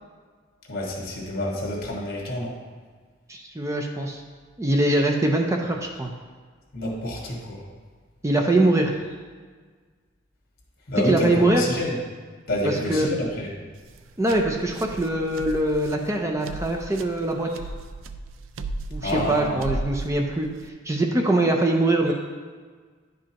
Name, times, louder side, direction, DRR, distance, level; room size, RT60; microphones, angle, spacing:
voice 1, 0.7-2.5 6.7-7.6 10.9-11.3 11.6-11.9 12.5-13.5 19.0-19.6, left 1 dB, 50° left, -2 dB, 1.6 m, -28 dB
voice 2, 3.3-4.2 4.6-6.1 8.2-9.0 11.0-11.6 12.6-13.1 14.2-17.5 18.9-22.1, right 1 dB, 15° right, 1 dB, 0.5 m, -23 dB
sound 1, 13.7-20.7, right 2 dB, 80° right, 0.4 m, -36 dB
10.5 x 5.1 x 2.9 m, 1.5 s
head